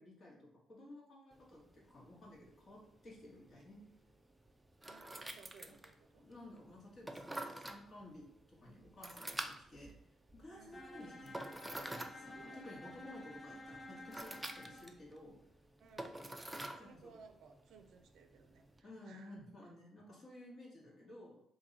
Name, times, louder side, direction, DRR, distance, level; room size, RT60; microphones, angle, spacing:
voice 1, 0.0-3.8 6.2-9.9 10.3-11.5 11.8-15.4 16.8-17.2 18.8-21.4, left 1 dB, 45° left, -3 dB, 1.3 m, -55 dB
sound 1, 1.3-18.8, right 1 dB, 10° right, 0.3 m, -50 dB
voice 2, 4.8-6.2 10.5-10.9 12.4-13.2 15.8-16.3 16.7-19.4, right 5 dB, 75° right, 6 dB, 0.4 m, -61 dB
Bowed string instrument, 10.7-14.9, left 1 dB, 15° left, 0.7 m, -52 dB
3.0 x 2.6 x 3.9 m, 0.76 s
cardioid pair, 90°, 0 cm